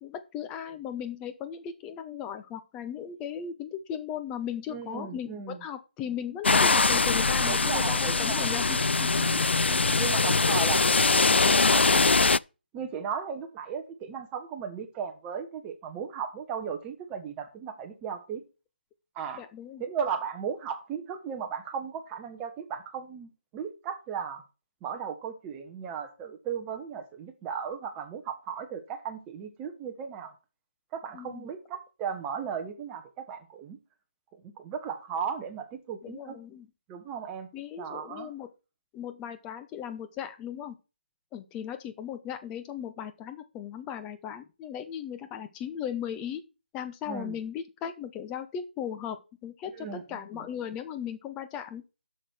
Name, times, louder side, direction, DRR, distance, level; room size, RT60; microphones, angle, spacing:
voice 1, 0.0-9.1 9.7-10.0 10.4-10.6 19.4-19.8 31.1-31.5 36.0-36.7 37.5-38.5 38.9-40.7 41.3-46.4 46.7-49.2 49.4-51.8, left 9 dB, 10° left, 9 dB, 0.9 m, -37 dB
voice 2, 4.7-5.6 7.5-8.5 9.1-9.5 10.0-12.1 12.7-18.4 19.1-19.4 19.8-24.4 24.8-30.3 30.9-33.8 34.6-36.4 36.9-37.5 37.8-38.3 47.1-47.4 49.7-50.4, right 7 dB, 15° right, 5 dB, 1.4 m, -36 dB
sound 1, 6.4-12.4, left 4 dB, 80° left, 0.4 m, -22 dB
7.6 x 6.5 x 5.9 m, 0.30 s
figure-of-eight pair, 160°, 6 cm